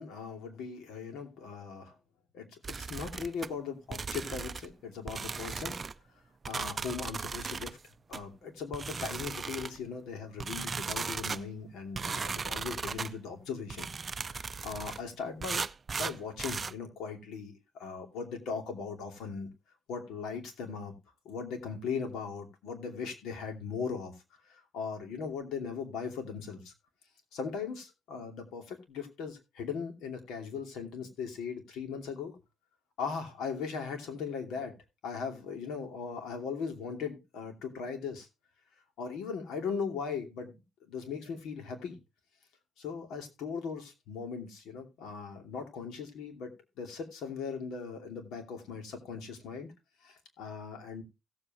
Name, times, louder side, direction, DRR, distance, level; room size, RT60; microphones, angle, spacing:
voice 1, 0.0-1.9 2.3-5.8 6.5-7.8 8.1-15.6 15.9-19.5 19.9-20.9 21.2-24.1 24.5-26.7 27.3-32.4 33.0-34.8 35.0-38.3 39.0-40.5 40.9-42.0 42.8-49.7 50.0-51.0, left 5 dB, 85° left, 5 dB, 2.7 m, -39 dB
sound 1, 2.6-3.5 3.9-4.7 5.1-5.9 6.4-7.7 8.1-8.2 8.7-9.8 10.4-11.4 11.9-13.1 13.7-15.0 15.4-16.7, right 5 dB, 35° right, 0.5 m, -37 dB
16.5 x 7.7 x 2.9 m, 0.25 s
cardioid pair, 90°, 0 cm